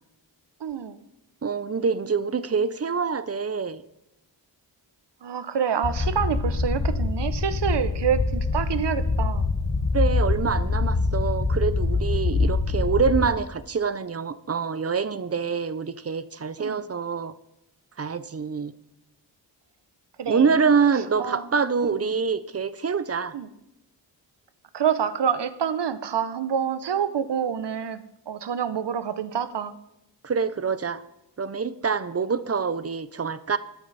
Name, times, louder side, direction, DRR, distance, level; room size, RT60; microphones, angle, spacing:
voice 1, 0.6-1.0 5.2-9.5 16.6-16.8 20.2-20.6 20.9-21.5 21.9-22.1 23.3-23.5 24.7-29.7, right 8 dB, 70° right, 13 dB, 0.9 m, -27 dB
voice 2, 1.4-3.8 9.9-17.3 18.0-18.7 20.3-23.3 30.2-31.0 31.4-33.6, right 5 dB, 35° right, 15 dB, 0.5 m, -25 dB
sound 1, 5.8-13.3, left 3 dB, 30° left, 1.0 m, -24 dB
14.0 x 9.9 x 4.1 m, 0.84 s
wide cardioid pair, 120°, 44 cm